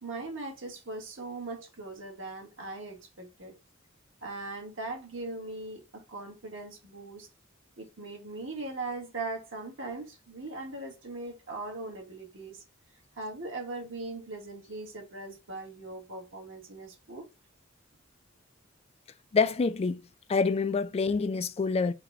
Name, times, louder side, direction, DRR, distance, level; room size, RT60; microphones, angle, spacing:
voice 1, 0.0-3.5 4.2-7.3 7.8-12.6 13.2-17.3, right 2 dB, 70° right, 1.6 m, -40 dB
voice 2, 19.3-20.0 20.3-21.9, left 4 dB, 30° left, 0.3 m, -26 dB
4.1 x 2.2 x 4.0 m
head